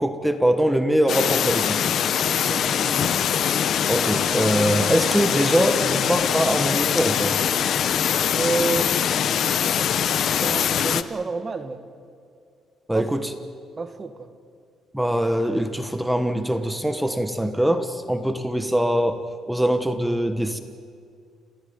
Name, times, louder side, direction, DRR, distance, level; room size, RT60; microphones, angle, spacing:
voice 1, 0.0-1.9 3.9-7.3 12.9-13.3 14.9-19.2 19.5-20.6, right 1 dB, 5° right, 8 dB, 1.3 m, -23 dB
sound 1, 1.1-11.0, left 8 dB, 55° left, 0.9 m, -23 dB
voice 2, 2.5-3.2 8.3-8.9 10.3-11.8 12.9-13.1 13.8-14.3, right 3 dB, 25° right, 8 dB, 1.8 m, -29 dB
29.5 x 15.5 x 9.5 m, 2.3 s
cardioid pair, 140°, 0 cm